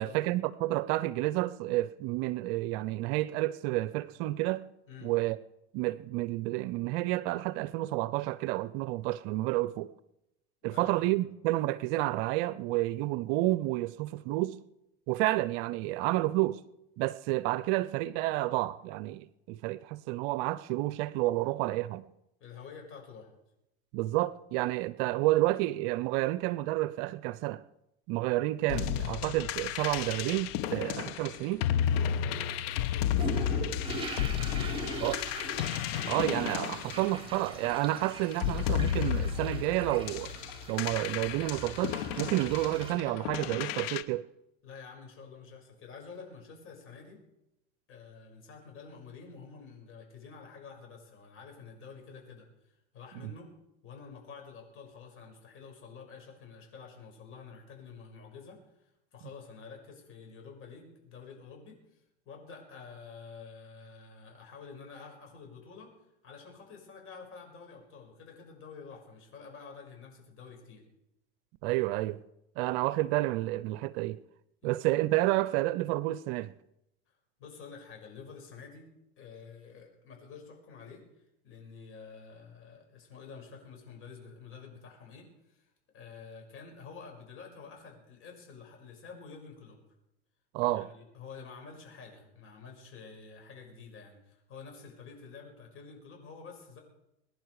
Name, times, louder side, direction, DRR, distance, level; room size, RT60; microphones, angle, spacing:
voice 1, 0.0-4.6 5.0-5.4 5.7-9.9 10.6-14.6 15.1-16.6 17.0-22.0 23.9-27.6 28.1-31.7 35.0-35.2 36.1-40.4 40.7-44.3 71.6-72.2 72.6-74.2 74.6-76.5 90.5-90.9, right 17 dB, 55° right, 0.7 m, -30 dB
voice 2, 10.6-11.2 22.4-23.3 31.9-35.4 44.6-47.2 47.9-53.5 53.8-65.9 66.2-70.8 74.6-74.7 77.1-78.9 79.2-89.8 90.7-96.8, left 5 dB, 40° left, 6.1 m, -49 dB
sound 1, 28.7-37.7 38.3-44.0, left 10 dB, 65° left, 1.1 m, -33 dB
sound 2, 33.2-43.0, right 1 dB, 15° right, 4.1 m, -41 dB
23.0 x 10.5 x 4.8 m
hypercardioid pair, 110°, 33 cm